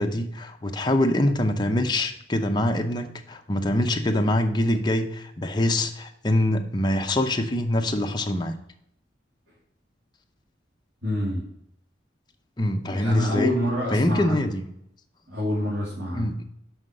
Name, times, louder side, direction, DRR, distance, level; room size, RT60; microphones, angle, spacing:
voice 1, 0.0-8.5 12.6-13.5 13.9-14.7 16.1-16.4, left 1 dB, 25° left, 4 dB, 0.7 m, -24 dB
voice 2, 11.0-11.4 12.9-14.4 15.3-16.3, left 1 dB, 80° right, -7 dB, 2.6 m, -27 dB
5.7 x 5.5 x 6.4 m, 0.72 s
head